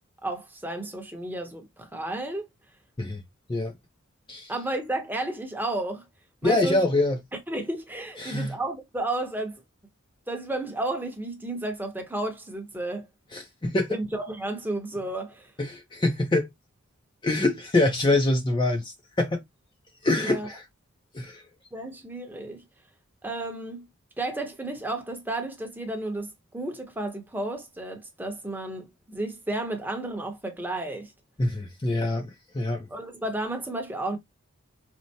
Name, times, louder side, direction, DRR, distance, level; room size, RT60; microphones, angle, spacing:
voice 1, 0.2-2.4 4.5-6.1 6.4-6.8 7.5-9.6 10.3-13.1 13.9-15.5 20.2-20.5 21.7-22.6 23.2-23.9 24.2-31.1 32.9-34.2, right 2 dB, 10° right, 0.7 m, -32 dB
voice 2, 6.4-7.2 8.2-8.6 13.3-14.0 15.6-16.5 17.2-19.4 20.0-20.6 21.1-21.4 31.4-32.9, left 2 dB, 20° left, 0.5 m, -25 dB
4.3 x 2.0 x 2.7 m
head